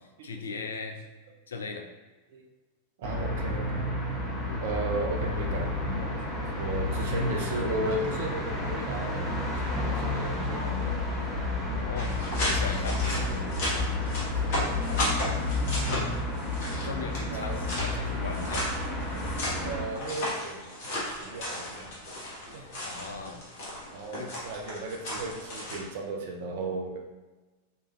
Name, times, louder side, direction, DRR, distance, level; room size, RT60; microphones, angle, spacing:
voice 1, 0.2-1.0 1.5-1.9 4.5-4.6 7.1-7.2 11.8-12.1 12.5-13.6 15.8-16.1 16.8-18.7 22.6-23.4 24.2-24.3, left 5 dB, 70° left, 5 dB, 0.4 m, -38 dB
sound 1, 3.0-19.8, left 2 dB, 15° left, 1.3 m, -31 dB
voice 2, 3.0-3.9 4.6-6.1 6.6-11.0 11.3-11.4 13.0-13.3 14.2-14.8 17.3-17.6 19.6-20.7 21.0-22.0 22.5-22.6 23.9-27.0, right 2 dB, 55° right, 2 dB, 0.6 m, -35 dB
sound 2, 12.0-25.8, left 1 dB, 50° left, 1.2 m, -35 dB
3.3 x 3.2 x 3.0 m, 1.2 s
figure-of-eight pair, 90°, 0 cm